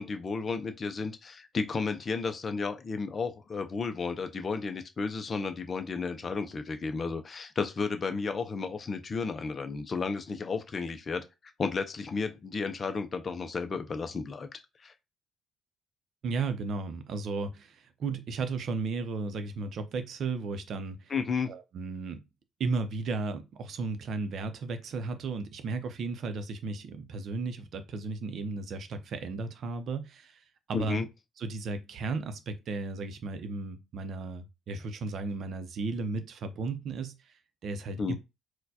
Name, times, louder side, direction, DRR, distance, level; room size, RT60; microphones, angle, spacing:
voice 1, 0.0-11.2 11.6-14.9 21.1-21.5 30.7-31.1 38.0-38.2, left 4 dB, 30° left, 0.5 m, -33 dB
voice 2, 16.2-21.1 21.5-22.2 22.6-31.0 31.4-37.3 37.6-38.2, right 4 dB, 50° right, 0.6 m, -34 dB
4.3 x 2.2 x 2.8 m
cardioid pair, 140°, 0 cm